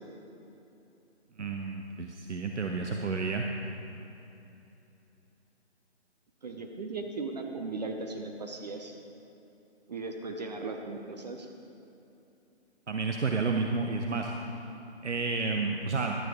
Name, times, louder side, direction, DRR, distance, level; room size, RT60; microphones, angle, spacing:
voice 1, 1.4-3.5 12.9-14.3 15.0-16.1, right 4 dB, 80° right, 2 dB, 0.9 m, -30 dB
voice 2, 6.4-8.9 9.9-11.5, right 3 dB, 40° right, 3 dB, 0.7 m, -37 dB
12.0 x 10.5 x 3.6 m, 2.9 s
figure-of-eight pair, 150°, 34 cm